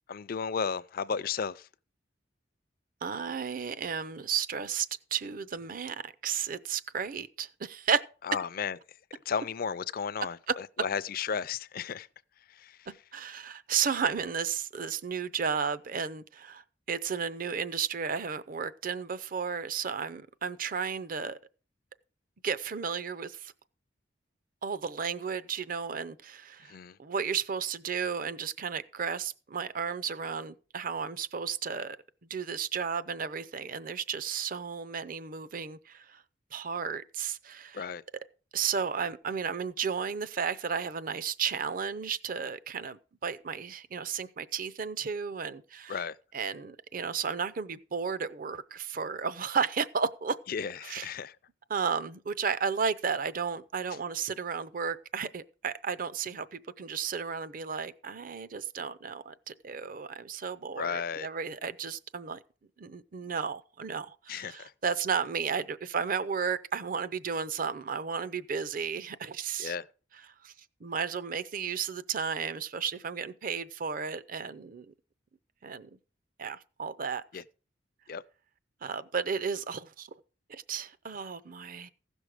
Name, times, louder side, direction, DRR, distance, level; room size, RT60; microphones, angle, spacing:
voice 1, 0.1-1.7 8.3-8.8 9.3-12.1 12.5-12.9 26.6-27.0 37.7-38.0 45.9-46.2 50.5-51.4 60.7-61.3 64.3-64.7 69.6-69.9 77.3-77.4 78.1-78.2, left 6 dB, 50° left, 0.4 m, -34 dB
voice 2, 3.0-8.0 13.1-16.6 16.9-21.4 22.4-23.5 24.6-32.0 32.3-36.2 36.5-37.8 38.5-46.0 46.3-50.4 50.9-51.1 51.7-62.4 62.8-69.8 70.4-70.5 70.8-74.9 75.6-75.9 76.4-77.2 78.8-80.1 80.5-81.9, right 6 dB, 50° right, 0.6 m, -33 dB
15.5 x 6.2 x 4.9 m
head